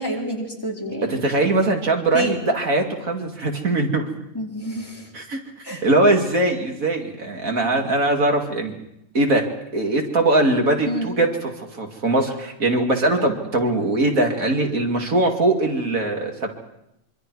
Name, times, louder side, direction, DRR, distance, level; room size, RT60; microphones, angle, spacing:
voice 1, 0.0-1.5 2.1-2.3 4.3-5.1 5.6-5.8 10.9-11.1, equal, 15° left, -2 dB, 4.3 m, -28 dB
voice 2, 0.8-4.0 5.1-5.4 5.8-8.8 9.1-9.5 9.7-16.5, right 2 dB, 75° right, 2 dB, 2.8 m, -21 dB
25.5 x 25.0 x 4.8 m, 0.82 s
omnidirectional pair, 1.5 m